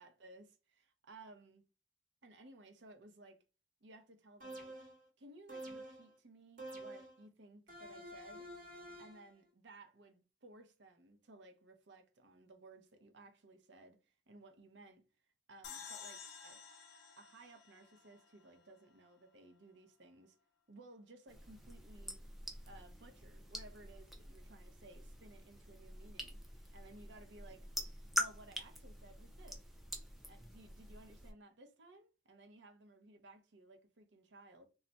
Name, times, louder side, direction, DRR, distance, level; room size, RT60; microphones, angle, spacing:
voice 1, 0.0-1.6 2.2-3.4 3.8-4.7 5.2-8.5 9.0-15.0 15.5-16.6 17.2-20.4 20.7-22.2 22.7-27.7 28.1-29.6 30.3-34.7, right 2 dB, 60° right, 0.6 m, -59 dB
sound 1, 4.4-5.0 5.5-6.1 6.6-7.2 7.7-9.3, right 1 dB, 40° right, 1.0 m, -49 dB
sound 2, 15.6-19.0, left 6 dB, 55° left, 0.5 m, -52 dB
sound 3, 21.3-31.3, left 1 dB, ahead, 0.3 m, -45 dB
2.3 x 2.1 x 3.9 m
head